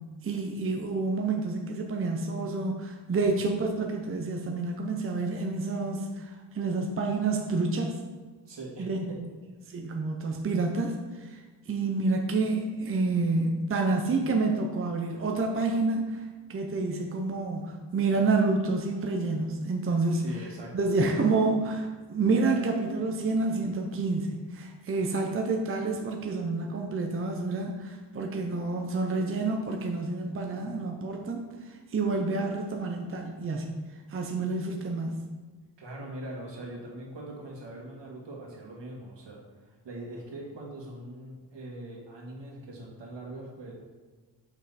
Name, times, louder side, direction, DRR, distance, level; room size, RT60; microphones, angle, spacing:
voice 1, 0.2-7.9 8.8-9.0 9.7-11.4 11.7-16.2 16.5-20.2 20.7-33.7 34.1-35.2, right 3 dB, 30° right, 2 dB, 0.6 m, -28 dB
voice 2, 8.4-9.2 20.1-20.9 35.8-39.4 39.8-43.7, right 1 dB, 75° right, -1 dB, 1.7 m, -41 dB
6.3 x 5.4 x 4.1 m, 1.4 s
wide cardioid pair, 160°, 43 cm